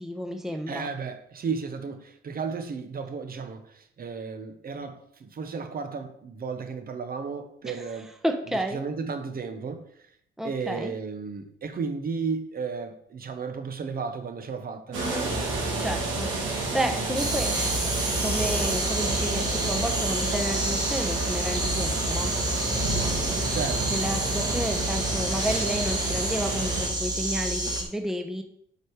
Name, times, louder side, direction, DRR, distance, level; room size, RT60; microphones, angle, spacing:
voice 1, 0.0-0.9 7.6-7.9 8.2-8.8 10.4-10.9 14.9-15.3 15.8-17.5 18.2-22.3 23.9-28.4, right 1 dB, ahead, 0.9 m, -31 dB
voice 2, 0.7-8.1 8.7-10.1 10.4-15.0 23.2-23.9, right 5 dB, 50° right, 1.1 m, -34 dB
sound 1, 14.9-26.9, right 2 dB, 80° right, 2.8 m, -30 dB
sound 2, 17.1-27.8, right 1 dB, 20° right, 2.0 m, -29 dB
7.7 x 5.1 x 4.8 m
cardioid pair, 90°, 20 cm